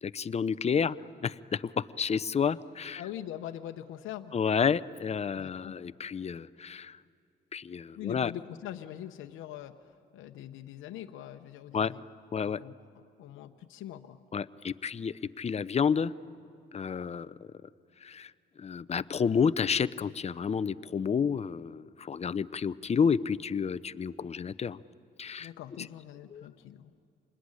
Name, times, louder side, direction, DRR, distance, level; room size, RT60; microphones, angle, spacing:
voice 1, 0.0-1.0 1.2-3.0 4.3-7.0 7.5-8.3 11.7-11.9 12.3-12.6 14.3-16.1 16.7-17.3 18.0-18.3 18.6-24.8 25.2-25.5 26.3-26.4, left 6 dB, 35° left, 16 dB, 0.6 m, -30 dB
voice 2, 3.0-4.3 5.3-5.7 7.9-12.0 12.4-14.2 25.4-26.9, left 11 dB, 90° left, 6 dB, 0.8 m, -43 dB
26.5 x 21.0 x 9.8 m, 2.5 s
cardioid pair, 90°, 20 cm